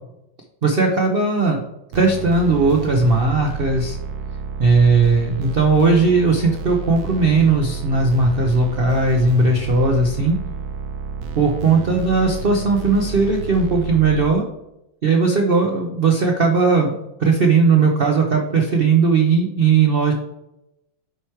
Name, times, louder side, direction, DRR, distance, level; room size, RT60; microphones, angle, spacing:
voice 1, 0.6-1.6 1.9-4.0 4.6-10.4 11.4-14.4 15.0-16.9 17.2-20.1, right 4 dB, 90° right, 2 dB, 0.5 m, -17 dB
sound 1, 1.9-14.3, right 5 dB, 65° right, 1.0 m, -31 dB
8.0 x 4.6 x 4.5 m, 0.88 s
omnidirectional pair, 2.2 m